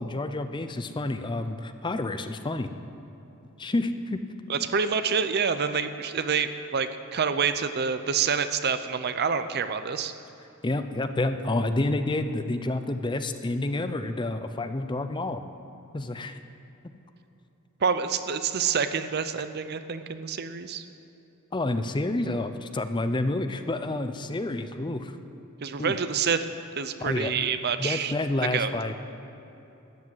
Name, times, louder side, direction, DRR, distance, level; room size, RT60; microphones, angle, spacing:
voice 1, 0.0-2.7 3.6-4.2 10.6-15.4 15.9-16.4 21.5-25.2 25.8-26.0 27.0-27.3 27.8-28.9, left 2 dB, 20° left, 9 dB, 0.5 m, -29 dB
voice 2, 4.5-10.1 17.8-20.8 25.6-26.4 26.8-28.1 28.5-28.7, right 6 dB, 50° right, 10 dB, 0.6 m, -27 dB
13.0 x 10.0 x 7.8 m, 3.0 s
head